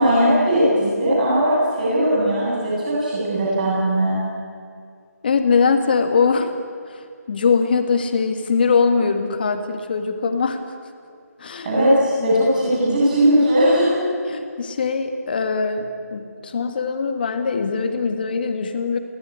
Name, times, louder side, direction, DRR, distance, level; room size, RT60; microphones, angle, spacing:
voice 1, 0.0-4.2 11.6-14.0, equal, 30° right, -6 dB, 8.0 m, -18 dB
voice 2, 5.2-6.5 6.9-10.6 11.4-11.7 12.2-12.3 14.3-19.0, left 5 dB, 35° left, 7 dB, 2.0 m, -21 dB
24.0 x 17.5 x 9.8 m, 2.2 s
figure-of-eight pair, 165°, 9 cm